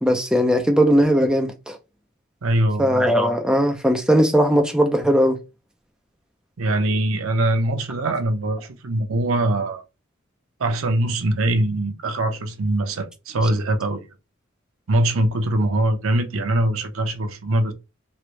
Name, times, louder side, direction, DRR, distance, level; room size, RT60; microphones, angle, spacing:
voice 1, 0.0-1.8 2.8-5.4, equal, 5° right, 0.5 m, -18 dB
voice 2, 2.4-3.2 6.6-9.8 10.6-14.1 14.9-17.7, right 1 dB, 80° right, 0.7 m, -22 dB
3.3 x 2.5 x 3.0 m
head